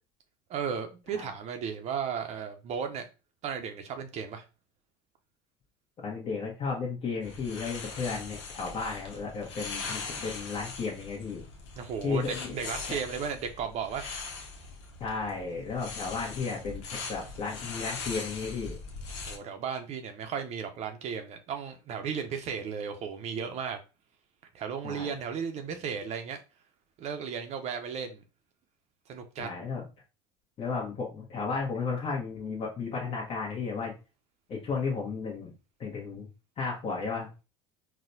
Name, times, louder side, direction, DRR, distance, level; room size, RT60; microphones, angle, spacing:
voice 1, 0.5-3.0 3.4-4.4 11.8-14.2 19.3-23.8 24.5-26.4 27.0-28.2 29.1-29.5, right 7 dB, 45° right, 0.6 m, -35 dB
voice 2, 6.0-11.4 12.0-12.5 12.9-13.0 15.0-18.8 24.8-25.1 29.4-29.8 30.6-33.9 34.5-35.5 35.8-36.3 36.6-37.4, left 4 dB, 40° left, 1.0 m, -34 dB
sound 1, 7.2-19.4, left 4 dB, 80° left, 0.8 m, -41 dB
4.0 x 2.2 x 2.6 m
hypercardioid pair, 85°, 15 cm